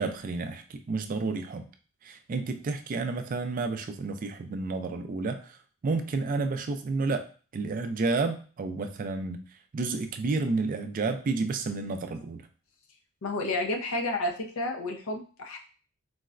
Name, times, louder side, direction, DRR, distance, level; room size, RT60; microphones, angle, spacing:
voice 1, 0.0-1.6 2.0-5.6 5.8-7.3 7.5-9.4 9.7-12.4, right 3 dB, 40° right, 6 dB, 0.3 m, -30 dB
voice 2, 13.2-15.6, left 2 dB, 90° left, 3 dB, 0.6 m, -31 dB
3.9 x 2.1 x 2.4 m, 0.39 s
head